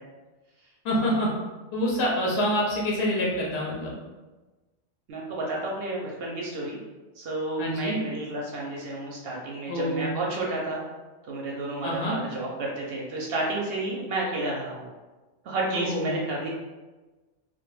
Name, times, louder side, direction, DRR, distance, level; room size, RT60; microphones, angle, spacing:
voice 1, 0.8-1.3 1.7-3.9 7.6-8.0 9.7-10.1 11.8-12.2 15.7-16.1, equal, 65° left, -3 dB, 0.8 m, -26 dB
voice 2, 5.1-6.8 7.2-10.8 11.3-14.9 15.4-16.5, right 2 dB, 65° right, -3 dB, 0.7 m, -31 dB
2.2 x 2.2 x 3.0 m, 1.2 s
omnidirectional pair, 1.2 m